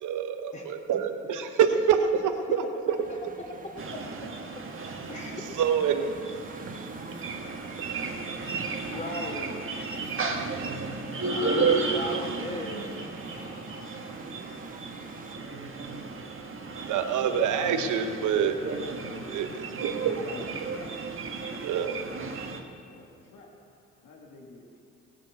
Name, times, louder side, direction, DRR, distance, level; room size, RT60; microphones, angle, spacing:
voice 1, 0.0-3.0 5.6-6.1 16.9-18.6 19.3-20.1 21.5-22.0, right 7 dB, 70° right, 7 dB, 1.1 m, -26 dB
sound 1, 2.9-15.4, right 3 dB, 25° right, 1.3 m, -48 dB
sound 2, 3.8-22.6, right 4 dB, 40° right, 1.6 m, -33 dB
voice 2, 5.1-5.4 8.8-9.6 11.9-12.9, left 1 dB, 25° left, -6 dB, 3.0 m, -37 dB
sound 3, 8.9-12.7 13.1-14.1, left 2 dB, 45° left, 2.0 m, -42 dB
voice 3, 20.0-21.0 22.8-23.6 24.0-24.8, left 3 dB, 80° left, -1 dB, 2.1 m, -46 dB
17.5 x 7.5 x 8.2 m, 2.7 s
supercardioid pair, 75°, 31 cm